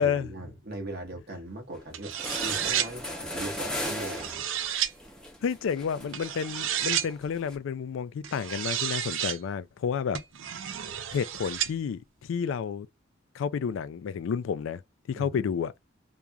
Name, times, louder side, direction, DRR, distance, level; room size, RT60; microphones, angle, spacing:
voice 1, 0.0-2.2 2.4-4.4 15.1-15.5, right 1 dB, 50° right, 1.0 m, -39 dB
sound 1, 1.7-1.8 2.1-7.6, left 1 dB, 5° left, 0.6 m, -38 dB
sound 2, 1.9-2.9 3.9-4.9 6.1-7.1 8.2-9.4 10.1-11.7, right 10 dB, 65° right, 0.4 m, -31 dB
voice 2, 5.4-10.2 11.1-12.9 13.3-14.8 15.1-15.7, left 7 dB, 65° left, 0.3 m, -30 dB
2.8 x 2.4 x 2.2 m
head